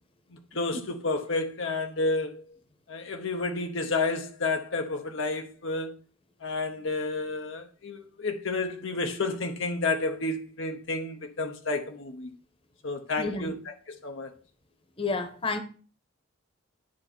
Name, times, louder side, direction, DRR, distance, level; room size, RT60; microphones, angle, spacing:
voice 1, 0.3-2.6 2.9-5.9 6.4-12.3 12.8-14.3, left 3 dB, 75° left, 1.0 m, -31 dB
voice 2, 13.2-13.5 15.0-15.6, left 3 dB, 25° left, 1.0 m, -30 dB
10.5 x 5.7 x 4.3 m
head